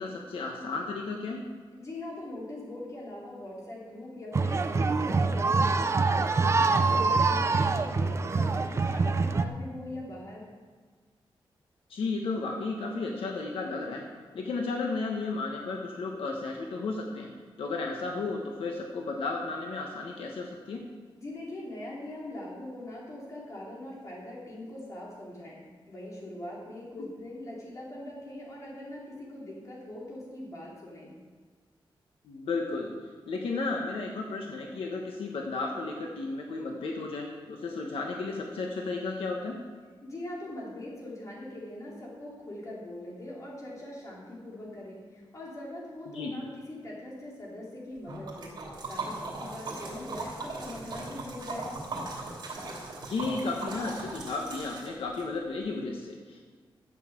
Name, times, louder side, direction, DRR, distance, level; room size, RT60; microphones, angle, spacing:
voice 1, 0.0-1.4 11.9-14.0 14.3-17.3 17.6-20.8 27.0-27.1 32.2-32.9 33.3-39.5 46.1-46.3 53.0-56.4, left 3 dB, 80° left, 0 dB, 1.4 m, -33 dB
voice 2, 1.7-10.4 21.2-31.1 40.0-48.5 48.9-51.8, left 1 dB, 35° left, -4 dB, 3.7 m, -42 dB
sound 1, 4.3-9.4, right 4 dB, 30° right, 0.5 m, -25 dB
Liquid, 48.1-55.2, right 3 dB, 50° right, 3.0 m, -39 dB
12.5 x 7.3 x 7.4 m, 1.5 s
wide cardioid pair, 180°, 9 cm